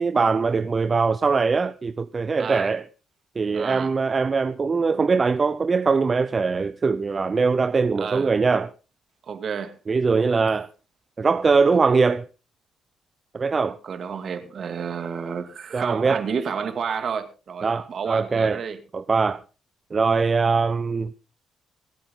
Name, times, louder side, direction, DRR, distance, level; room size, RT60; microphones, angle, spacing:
voice 1, 0.0-2.8 3.4-8.7 9.9-10.7 11.2-12.2 13.3-13.8 15.7-16.2 17.6-18.6 18.9-19.4 19.9-21.1, right 4 dB, 35° right, 0.7 m, -22 dB
voice 2, 2.4-2.7 3.5-3.9 8.0-8.3 9.2-9.8 13.8-18.8, right 6 dB, 55° right, 2.4 m, -30 dB
25.0 x 8.7 x 3.8 m
cardioid pair, 90°, 0 cm